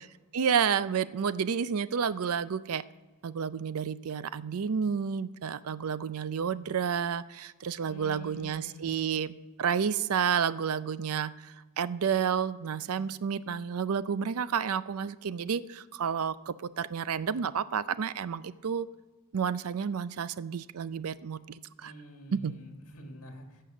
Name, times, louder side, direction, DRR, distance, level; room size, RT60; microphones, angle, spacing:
voice 1, 0.3-2.8 3.2-9.3 9.6-18.9 19.3-21.9 22.3-22.5, right 7 dB, 80° right, 16 dB, 0.5 m, -30 dB
voice 2, 7.8-9.1 21.8-23.6, equal, 75° left, 3 dB, 2.1 m, -47 dB
16.0 x 6.7 x 6.4 m, 1.3 s
head